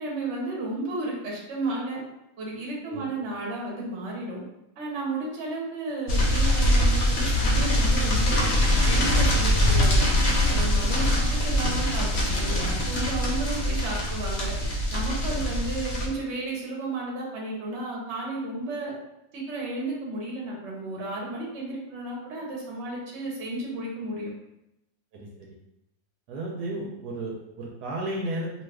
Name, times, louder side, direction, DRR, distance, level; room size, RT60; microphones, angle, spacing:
voice 1, 0.0-2.0 2.4-4.4 4.8-8.5 8.8-10.1 10.5-14.5 14.9-18.9 19.3-24.3, right 2 dB, 50° right, -2 dB, 1.0 m, -33 dB
sound 1, 6.1-16.1, left 1 dB, 55° left, 0.8 m, -23 dB
voice 2, 25.1-25.6 26.3-28.6, right 1 dB, 75° right, -2 dB, 1.1 m, -33 dB
2.8 x 2.4 x 3.2 m, 0.87 s
omnidirectional pair, 1.8 m